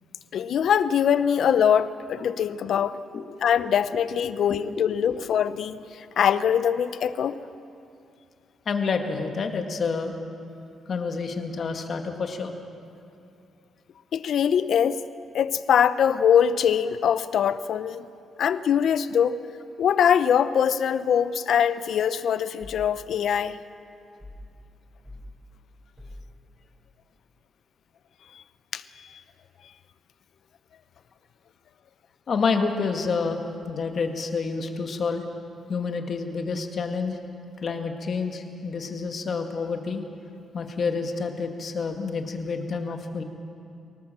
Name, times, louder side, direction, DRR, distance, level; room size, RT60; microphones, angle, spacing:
voice 1, 0.3-3.0 3.4-7.4 14.1-15.0 15.3-18.0 18.4-19.4 19.8-23.6 28.7-28.8, left 8 dB, 65° left, 14 dB, 0.8 m, -22 dB
voice 2, 8.7-10.2 10.9-12.5 32.3-35.2 35.7-37.2 37.6-40.0 40.5-43.2, left 4 dB, 45° left, 5 dB, 2.0 m, -28 dB
sound 1, 22.6-22.9 24.2-24.5 25.0-25.3 26.0-26.3, left 1 dB, 10° right, 6.6 m, -43 dB
24.5 x 18.5 x 7.6 m, 2.6 s
cardioid pair, 125°, 0 cm